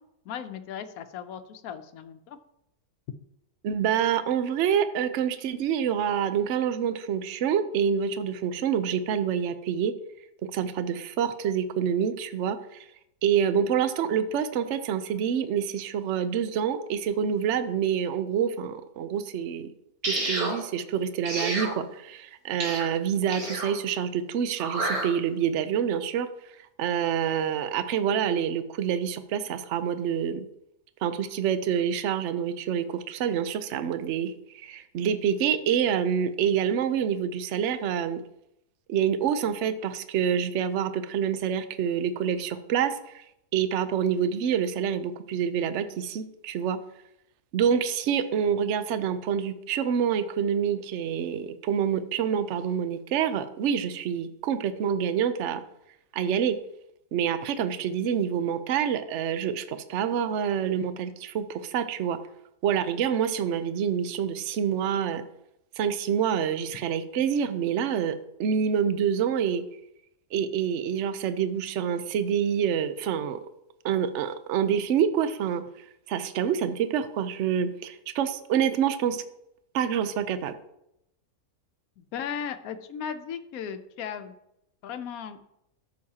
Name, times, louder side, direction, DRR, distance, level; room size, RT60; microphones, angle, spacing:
voice 1, 0.2-2.4 82.0-84.4 84.8-85.4, left 8 dB, 75° left, 9 dB, 1.1 m, -36 dB
voice 2, 3.6-9.9 10.4-12.8 13.2-19.7 20.1-26.3 26.8-30.5 31.0-38.2 38.9-43.2 43.5-46.8 47.5-55.6 56.1-56.6 57.1-62.2 62.6-65.3 65.8-68.1 68.4-69.6 70.3-73.4 73.8-75.6 76.1-79.2 79.7-80.5, right 8 dB, 60° right, 11 dB, 0.9 m, -27 dB
sound 1, 20.0-20.6 21.2-21.7 22.6-22.9 23.3-23.7 24.6-25.1, right 2 dB, 80° right, 2.4 m, -29 dB
13.0 x 6.4 x 2.8 m, 0.81 s
omnidirectional pair, 1.5 m